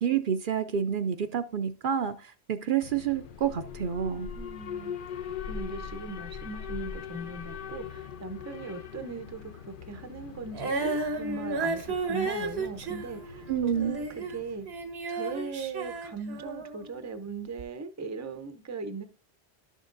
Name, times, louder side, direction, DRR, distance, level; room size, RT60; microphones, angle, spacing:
voice 1, 0.0-4.3 13.5-14.0, right 8 dB, 60° right, 0.7 m, -29 dB
Alarm, 2.8-14.8, left 7 dB, 60° left, 0.7 m, -41 dB
voice 2, 4.4-5.0 5.5-14.7 15.1-19.0, right 4 dB, 20° right, 0.6 m, -39 dB
Female singing, 10.5-16.9 17.6-17.7, right 3 dB, 85° right, 1.3 m, -33 dB
11.5 x 6.4 x 2.5 m
omnidirectional pair, 1.0 m